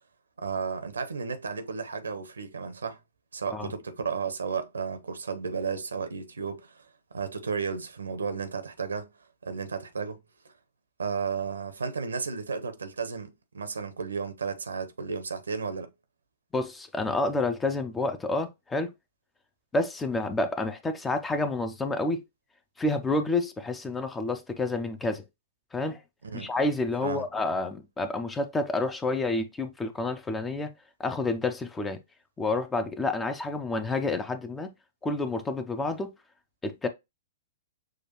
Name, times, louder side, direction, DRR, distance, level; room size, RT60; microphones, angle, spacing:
voice 1, 0.4-3.0 3.3-6.9 7.1-9.1 9.4-10.2 10.4-10.5 11.0-15.9 26.2-26.5 27.0-27.2, right 5 dB, 70° right, 0.8 m, -33 dB
voice 2, 16.5-18.9 19.7-22.2 22.8-25.2 25.7-26.0 26.3-30.7 31.0-32.0 32.4-34.7 35.0-36.1 36.6-36.9, left 2 dB, 10° left, 0.6 m, -29 dB
6.3 x 2.4 x 2.9 m
figure-of-eight pair, 110°, 0 cm